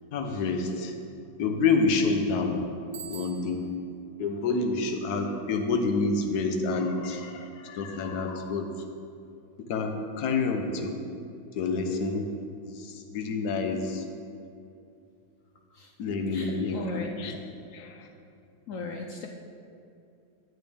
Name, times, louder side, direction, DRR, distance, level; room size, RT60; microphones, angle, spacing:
voice 1, 0.1-0.9 1.4-2.7 3.1-3.8 4.2-8.7 9.7-11.0 11.6-12.4 12.8-14.0 16.0-16.8 17.2-17.4 17.7-18.1, left 4 dB, 60° left, 5 dB, 1.3 m, -28 dB
Bicycle bell, 2.9-3.9, right 9 dB, 65° right, 1.0 m, -44 dB
voice 2, 16.3-17.2 18.7-19.3, left 4 dB, 75° left, 2 dB, 0.7 m, -38 dB
10.5 x 9.6 x 3.5 m, 2.6 s
omnidirectional pair, 2.2 m